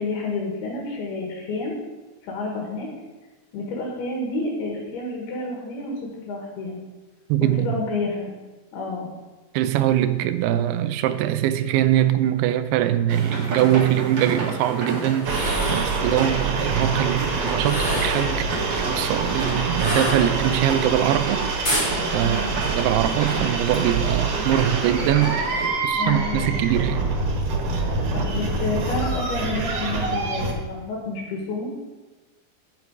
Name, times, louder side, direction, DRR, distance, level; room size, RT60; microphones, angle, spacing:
voice 1, 0.0-1.8 2.2-2.9 3.5-6.0 6.3-6.8 7.4-8.3 8.7-9.1 22.2-22.6 25.7-26.5 28.1-31.7, left 2 dB, 75° left, -1 dB, 3.4 m, -29 dB
voice 2, 7.3-7.7 9.5-18.5 18.9-21.8 22.1-25.4 25.8-27.0, right 12 dB, 85° right, 11 dB, 2.6 m, -22 dB
sound 1, 13.1-25.7, right 3 dB, 45° right, 1.6 m, -31 dB
sound 2, 15.2-16.0 17.6-18.3 19.8-20.7 21.6-21.9, left 1 dB, 25° left, 3.2 m, -27 dB
sound 3, 15.2-30.5, right 3 dB, 65° right, 2.9 m, -26 dB
9.2 x 7.5 x 4.7 m, 1.2 s
omnidirectional pair, 4.6 m